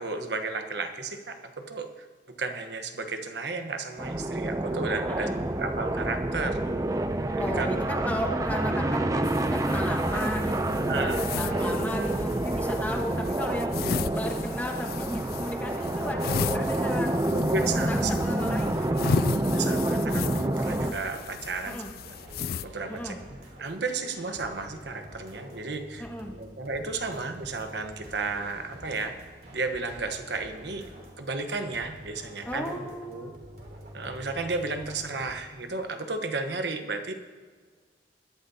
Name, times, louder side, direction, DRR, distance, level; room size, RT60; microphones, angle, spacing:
voice 1, 0.0-2.1 2.4-6.6 7.4-8.3 9.1-9.3 10.8-11.2 17.3-18.1 19.5-21.8 22.6-23.2 23.6-26.1 26.3-29.1 29.5-30.8 31.2-33.3 33.9-37.1, right 3 dB, 80° right, 6 dB, 1.1 m, -33 dB
sound 1, 4.0-20.9, right 1 dB, 20° right, 0.5 m, -28 dB
voice 2, 7.4-10.7 10.9-13.8 14.1-17.1 17.9-19.2 21.6-21.9 22.9-23.2 26.0-26.4 32.4-33.3, equal, 10° left, 1 dB, 1.2 m, -34 dB
sound 2, 9.2-22.6, left 6 dB, 55° left, 0.3 m, -35 dB
sound 3, 20.7-35.4, equal, 55° right, 3.0 m, -47 dB
21.5 x 11.5 x 2.8 m, 1.5 s
head